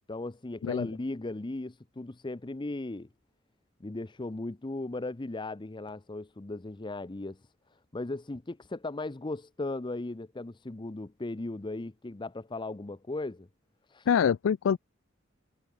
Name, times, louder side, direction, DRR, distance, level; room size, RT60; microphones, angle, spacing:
voice 1, 0.1-3.1 3.8-7.4 7.9-13.5 13.9-14.1, left 2 dB, 25° left, 0.6 m, -37 dB
voice 2, 14.1-14.8, left 7 dB, 75° left, 0.4 m, -25 dB
head